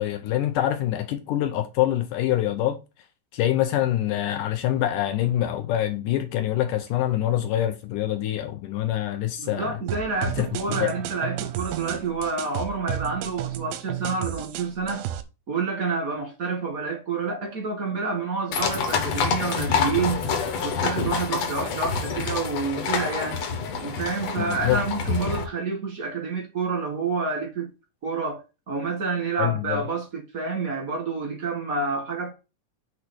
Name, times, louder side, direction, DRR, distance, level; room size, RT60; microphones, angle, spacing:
voice 1, 0.0-2.8 3.3-9.8 10.4-10.9 24.4-24.8 29.4-29.8, left 12 dB, 75° left, 2.0 m, -25 dB
voice 2, 9.4-15.1 15.5-20.3 20.6-23.4 23.8-27.7 28.0-32.3, right 4 dB, 50° right, 0.9 m, -28 dB
sound 1, 9.9-15.2, right 12 dB, 85° right, 2.6 m, -32 dB
sound 2, 18.5-25.4, left 5 dB, 60° left, 1.9 m, -27 dB
8.2 x 3.1 x 6.1 m
omnidirectional pair, 4.1 m